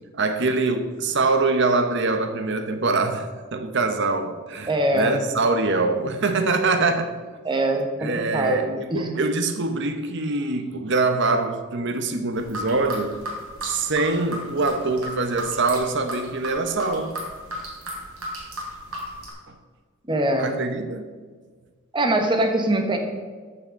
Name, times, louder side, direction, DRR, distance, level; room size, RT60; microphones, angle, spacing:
voice 1, 0.1-7.1 8.0-13.1 13.6-17.2 20.4-21.1, right 3 dB, 55° right, 0.9 m, -24 dB
voice 2, 4.7-5.2 7.4-9.1 20.1-20.6 21.9-23.0, right 1 dB, 20° right, 1.1 m, -23 dB
sound 1, 12.4-19.3, equal, 85° right, 3.2 m, -34 dB
13.5 x 5.8 x 5.2 m
head